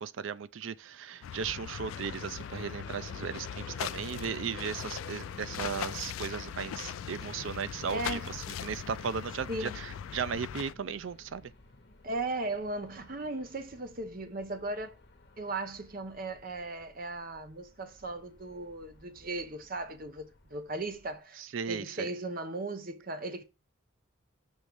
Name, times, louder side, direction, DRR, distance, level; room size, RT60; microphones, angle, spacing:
voice 1, 0.0-11.5 21.4-22.1, right 6 dB, 75° right, 0.4 m, -36 dB
sound 1, 1.2-10.7, left 9 dB, 85° left, 0.3 m, -40 dB
sound 2, 1.8-21.2, left 2 dB, 55° left, 1.0 m, -52 dB
voice 2, 7.7-8.3 9.5-9.8 12.0-14.9 15.4-23.4, right 2 dB, 45° right, 0.8 m, -37 dB
6.3 x 3.1 x 5.2 m
head